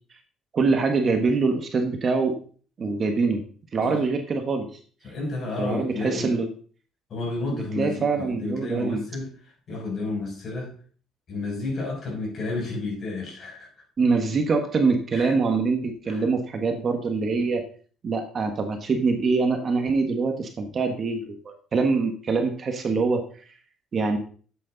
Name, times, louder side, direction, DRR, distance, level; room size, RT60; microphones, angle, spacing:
voice 1, 0.5-2.4 2.8-3.4 3.7-4.8 5.6-6.5 7.8-9.0 14.0-17.6 18.0-23.3 23.9-24.2, right 4 dB, 30° right, 5 dB, 1.3 m, -24 dB
voice 2, 5.0-6.4 7.1-9.3 9.7-10.7 11.3-13.7 15.1-15.4 16.1-16.2, left 3 dB, 40° left, -1 dB, 6.2 m, -31 dB
12.0 x 8.1 x 3.9 m, 0.43 s
cardioid pair, 150°, 0 cm